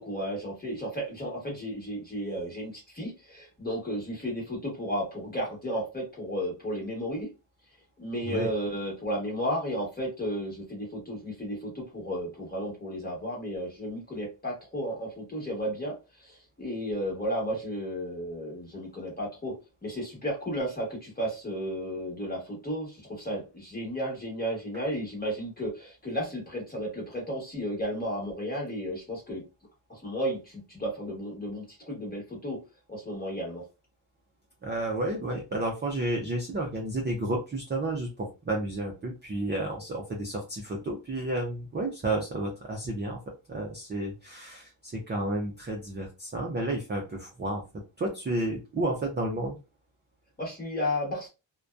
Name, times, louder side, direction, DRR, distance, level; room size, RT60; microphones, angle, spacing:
voice 1, 0.0-7.3 8.0-29.4 29.9-32.6 32.9-33.6 50.4-51.3, equal, 20° left, 1.0 m, -33 dB
voice 2, 34.6-43.2 43.5-47.6 48.0-49.6, right 1 dB, 25° right, 0.3 m, -31 dB
2.6 x 2.1 x 2.2 m
wide cardioid pair, 180°, 49 cm